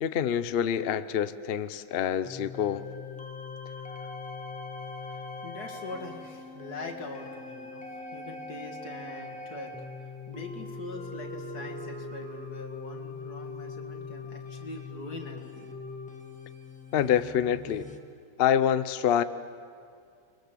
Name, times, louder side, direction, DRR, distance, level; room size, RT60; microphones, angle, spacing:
voice 1, 0.0-2.8 16.9-17.9 18.4-19.2, left 9 dB, 90° left, 13 dB, 0.5 m, -26 dB
sound 1, 2.2-18.0, left 3 dB, 5° left, 1.3 m, -41 dB
voice 2, 5.0-9.7 10.3-15.7, left 3 dB, 55° left, 2 dB, 2.7 m, -43 dB
29.5 x 22.5 x 7.5 m, 2.3 s
omnidirectional pair, 2.0 m